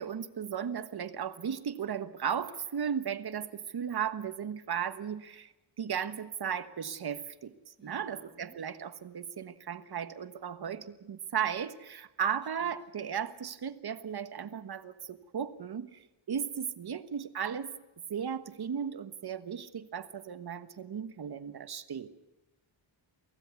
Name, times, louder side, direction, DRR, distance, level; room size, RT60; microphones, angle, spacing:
voice 1, 0.0-5.5 5.8-7.5 7.8-16.0 16.3-17.7 18.1-22.1, right 8 dB, 50° right, 12 dB, 1.3 m, -35 dB
voice 2, 7.8-8.6 12.6-12.8, right 3 dB, 20° right, 4 dB, 2.2 m, -57 dB
24.0 x 16.0 x 8.3 m, 1.1 s
wide cardioid pair, 140°, 49 cm